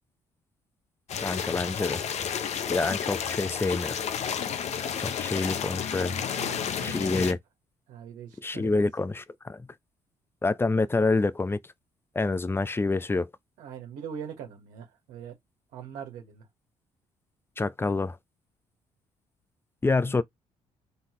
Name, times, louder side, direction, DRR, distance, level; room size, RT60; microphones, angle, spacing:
sound 1, 1.1-7.3, left 8 dB, 60° left, 0.8 m, -31 dB
voice 1, 1.2-2.0 2.7-4.0 5.0-6.3 6.8-7.4 8.4-9.6 10.4-11.6 12.2-13.3 17.6-18.2 19.8-20.2, left 3 dB, 20° left, 0.6 m, -27 dB
voice 2, 6.2-7.4 7.9-8.7 13.6-15.4 15.7-16.5, right 8 dB, 85° right, 1.6 m, -42 dB
4.0 x 3.8 x 3.1 m
supercardioid pair, 65°, 13 cm